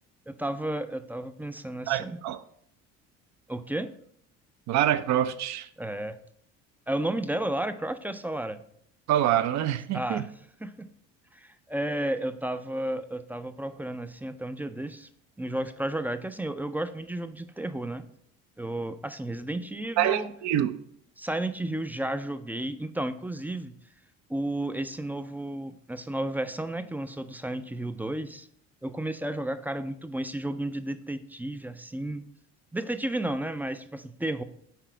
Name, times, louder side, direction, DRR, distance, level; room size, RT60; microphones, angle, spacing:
voice 1, 0.3-2.2 3.5-3.9 5.8-6.2 6.9-8.6 9.9-10.3 10.6-10.9 11.3-15.1 15.4-18.1 18.6-20.3 21.2-23.7 24.3-28.5 28.8-32.2 32.7-34.4, right 1 dB, 5° right, 0.3 m, -32 dB
voice 2, 1.9-2.4 4.7-5.7 9.1-10.3 20.0-20.8, right 11 dB, 60° right, 0.5 m, -26 dB
5.9 x 4.1 x 4.5 m
supercardioid pair, 85°, 31 cm